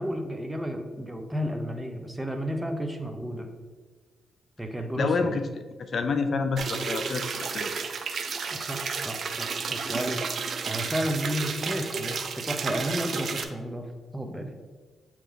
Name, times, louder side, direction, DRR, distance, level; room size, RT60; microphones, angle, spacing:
voice 1, 0.0-3.5 4.6-5.3 8.5-10.4 10.7-13.9 14.1-14.5, equal, 10° right, 4 dB, 0.8 m, -32 dB
voice 2, 5.0-5.4 5.8-7.7, left 4 dB, 60° left, 8 dB, 0.4 m, -28 dB
sound 1, 6.6-13.4, right 5 dB, 60° right, 0.5 m, -32 dB
8.1 x 3.0 x 3.9 m, 1.4 s
cardioid pair, 65°, 0 cm